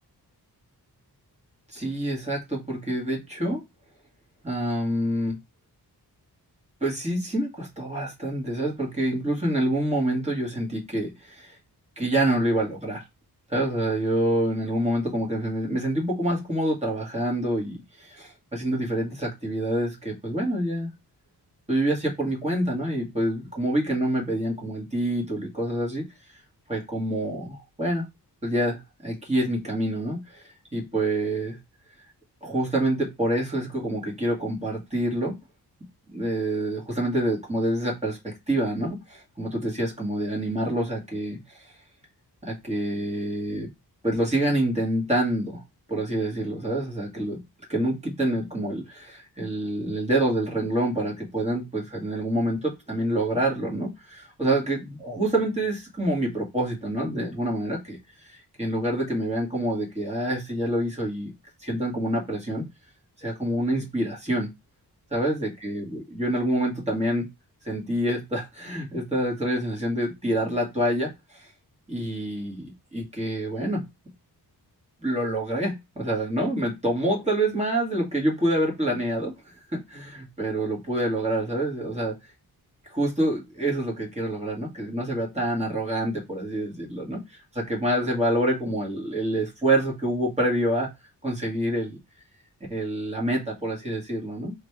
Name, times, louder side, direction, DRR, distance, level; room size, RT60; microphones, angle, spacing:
voice 1, 1.7-3.6 4.4-5.4 6.8-11.6 12.0-13.0 13.5-20.9 21.7-26.1 26.7-28.0 28.4-30.4 30.7-31.6 32.4-35.4 36.1-41.7 42.4-43.7 44.0-45.6 45.9-47.4 47.7-58.0 58.2-61.3 61.6-62.7 63.2-64.5 65.1-67.3 67.6-71.5 71.9-73.8 75.0-79.3 79.7-82.2 82.8-90.9 91.2-92.0 92.7-94.5, right 1 dB, 15° right, -3 dB, 2.0 m, -27 dB
3.9 x 3.4 x 3.5 m, 0.22 s
wide cardioid pair, 145°, 40 cm